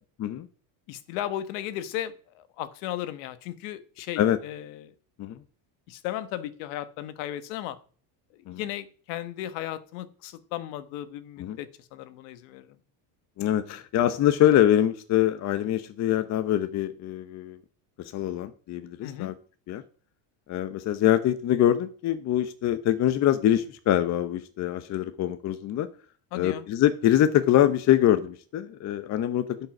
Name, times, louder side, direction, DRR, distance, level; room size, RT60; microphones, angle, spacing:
voice 1, 0.9-4.9 5.9-7.8 8.3-12.8 19.0-19.3 26.3-26.7, left 12 dB, 85° left, 13 dB, 1.2 m, -36 dB
voice 2, 13.4-17.6 18.0-19.3 19.7-19.8 20.5-25.9 26.3-29.7, left 12 dB, 35° left, 11 dB, 0.7 m, -24 dB
11.5 x 5.5 x 5.9 m, 0.42 s
cardioid pair, 145°, 46 cm